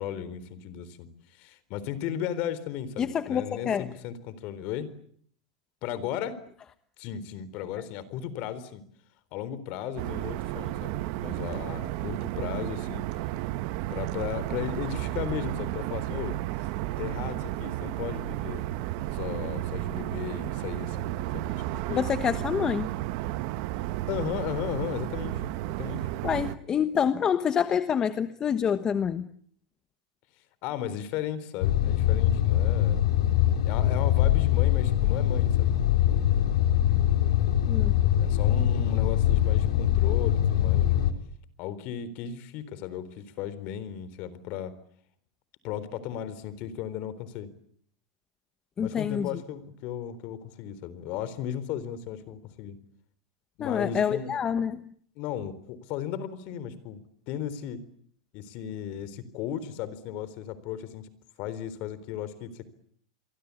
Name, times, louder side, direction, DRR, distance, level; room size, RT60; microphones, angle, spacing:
voice 1, 0.0-4.9 5.8-6.4 7.0-8.8 9.3-11.0 11.2-13.0 13.9-16.7 17.0-18.6 19.1-22.1 24.1-26.1 30.6-33.0 33.6-35.7 38.2-40.9 41.6-44.8 45.6-47.5 48.8-52.8 53.6-54.4 55.2-57.0 57.3-57.8 58.3-61.1 61.4-62.6, left 10 dB, 45° left, 16 dB, 3.9 m, -35 dB
voice 2, 3.0-3.9 21.9-22.9 26.2-29.3 37.7-38.0 48.8-49.3 53.6-54.9, left 8 dB, 20° left, 11 dB, 1.1 m, -27 dB
sound 1, 10.0-26.5, right 15 dB, 50° right, 1.3 m, -32 dB
sound 2, 31.6-41.1, left 11 dB, 75° left, 3.9 m, -23 dB
28.5 x 23.5 x 8.5 m, 0.63 s
supercardioid pair, 155°, 3 cm